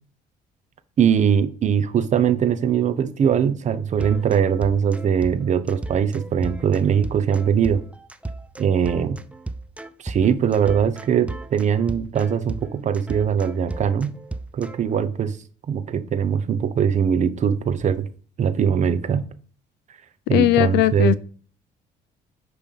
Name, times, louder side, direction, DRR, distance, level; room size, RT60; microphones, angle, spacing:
voice 1, 1.0-7.8 8.6-9.2 10.0-14.1 14.5-15.4 15.7-18.1 18.4-19.2 20.3-21.2, right 7 dB, 45° right, 0.8 m, -21 dB
sound 1, 4.0-14.8, right 2 dB, 5° right, 0.5 m, -35 dB
voice 2, 20.3-21.1, left 15 dB, 85° left, 0.5 m, -18 dB
10.0 x 3.4 x 5.4 m
cardioid pair, 110°, 17 cm